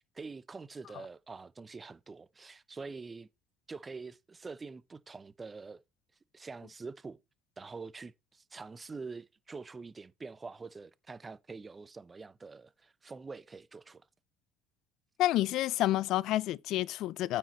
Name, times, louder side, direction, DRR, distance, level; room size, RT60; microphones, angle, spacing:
voice 1, 0.0-3.3 3.7-5.8 6.3-7.2 7.6-14.0, right 4 dB, 25° right, 0.5 m, -45 dB
voice 2, 15.2-17.4, left 14 dB, 65° left, 0.4 m, -29 dB
8.9 x 4.9 x 4.1 m
supercardioid pair, 95°, 0 cm